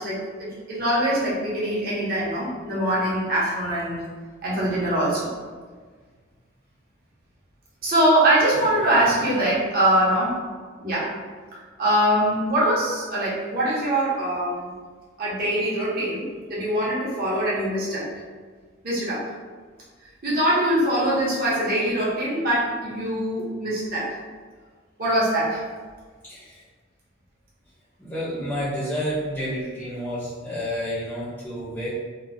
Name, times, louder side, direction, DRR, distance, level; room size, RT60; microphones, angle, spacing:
voice 1, 0.0-4.0 4.4-5.3 7.8-10.4 10.8-11.1 11.8-14.7 15.2-18.1 18.8-19.3 20.2-24.2 25.0-25.7, right 1 dB, 50° right, -6 dB, 0.9 m, -23 dB
voice 2, 8.6-9.1 26.2-26.6 28.0-31.9, equal, 10° left, -11 dB, 0.6 m, -30 dB
2.9 x 2.1 x 2.5 m, 1.5 s
head